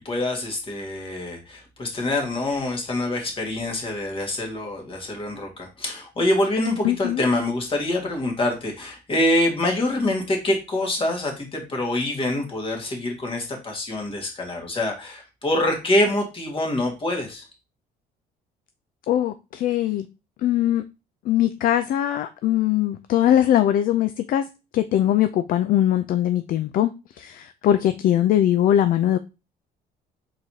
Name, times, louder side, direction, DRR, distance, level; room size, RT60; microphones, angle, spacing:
voice 1, 0.1-17.5, left 1 dB, 30° left, 1.8 m, -25 dB
voice 2, 6.8-7.3 19.1-20.1 20.4-20.8 21.3-24.5 24.7-26.9 27.2-29.2, left 11 dB, 55° left, 0.4 m, -21 dB
4.7 x 4.0 x 2.8 m
cardioid pair, 110°, 17 cm